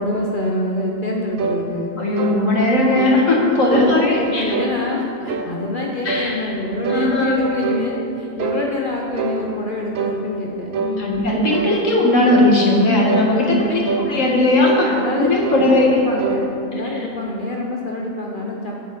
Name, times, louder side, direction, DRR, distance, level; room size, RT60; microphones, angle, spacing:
voice 1, 0.0-1.9 3.7-11.2 13.3-14.2 14.8-15.3 15.6-18.9, left 2 dB, 45° left, -1 dB, 0.9 m, -26 dB
sound 1, 1.4-1.6 2.2-2.4 3.0-3.2 3.7-4.0 4.5-4.8 5.3-5.6 6.1-6.3 6.8-7.9 8.4-8.6 9.2-9.4 10.0-10.2 10.7-11.0 11.5-11.8 12.3-12.5 13.1-13.3 13.9-14.1 14.6-14.9 15.4-15.7 16.2-16.4, right 5 dB, 80° right, 1.2 m, -25 dB
voice 2, 2.0-4.5 6.0-6.4 6.9-7.4 11.0-15.9 16.8-17.1, left 1 dB, 70° left, -2 dB, 2.0 m, -17 dB
9.8 x 5.4 x 8.1 m, 2.8 s
omnidirectional pair, 1.4 m